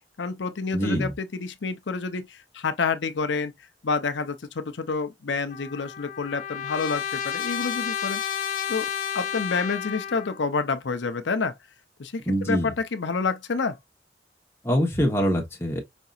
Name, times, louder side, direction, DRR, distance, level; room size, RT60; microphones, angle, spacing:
voice 1, 0.2-3.5 3.8-8.2 8.7-8.9 9.1-11.5 12.0-13.8, left 4 dB, 80° left, 0.6 m, -28 dB
voice 2, 0.7-1.1 12.3-12.7 14.6-15.8, equal, 15° left, 1.1 m, -24 dB
Trumpet, 5.5-10.4, left 8 dB, 45° left, 0.7 m, -31 dB
5.2 x 2.8 x 2.4 m
head